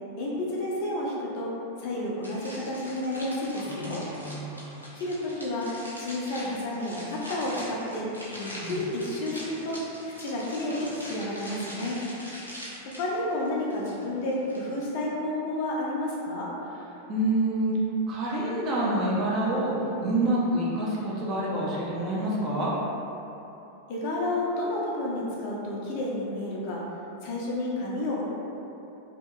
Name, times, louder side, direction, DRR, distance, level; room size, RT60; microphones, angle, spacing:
voice 1, 0.2-1.5 1.8-4.0 4.9-5.7 6.0-8.1 8.4-12.0 12.8-16.5 23.9-26.8 27.2-28.2, left 1 dB, 45° left, -4 dB, 0.6 m, -31 dB
sound 1, 2.2-14.9, equal, 85° left, 0.6 m, -42 dB
voice 2, 3.5-4.8 8.6-8.8 17.1-17.8 18.1-22.7, right 1 dB, 30° right, -6 dB, 0.6 m, -27 dB
2.7 x 2.7 x 2.3 m, 3.0 s
figure-of-eight pair, 90°, 0 cm